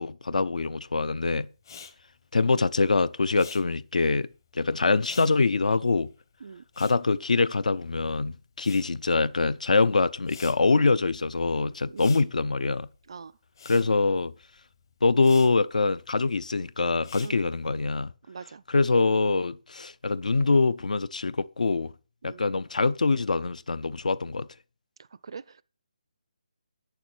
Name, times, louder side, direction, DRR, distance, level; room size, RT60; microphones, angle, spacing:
voice 1, 0.0-1.5 2.3-4.3 4.5-6.1 6.8-12.9 13.7-14.3 15.0-18.1 18.7-21.9 22.2-24.5, left 3 dB, 70° left, 0.7 m, -24 dB
Respiratory sounds, 1.6-8.1 8.3-17.8, left 6 dB, 30° left, 1.1 m, -50 dB
voice 2, 11.9-12.2 13.1-13.4 17.2-17.3 18.3-18.6 22.2-22.4 25.0-25.6, right 5 dB, 40° right, 0.4 m, -43 dB
8.7 x 7.1 x 6.1 m
hypercardioid pair, 175°, 4 cm